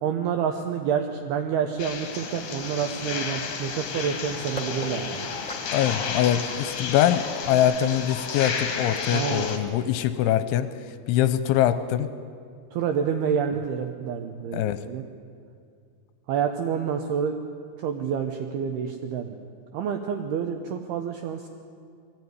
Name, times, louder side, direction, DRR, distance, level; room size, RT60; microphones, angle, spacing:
voice 1, 0.0-5.3 5.9-6.0 9.1-9.5 12.7-15.0 16.3-17.4 17.8-19.4 19.7-21.5, right 7 dB, 80° right, 5 dB, 2.3 m, -28 dB
sound 1, 1.8-9.6, left 6 dB, 55° left, 2.3 m, -32 dB
sound 2, 4.6-10.4, left 1 dB, 10° left, 2.0 m, -42 dB
voice 2, 5.7-10.7 11.1-12.1 14.5-14.8, left 11 dB, 80° left, 12 dB, 2.9 m, -23 dB
21.0 x 15.5 x 9.5 m, 2.3 s
omnidirectional pair, 5.7 m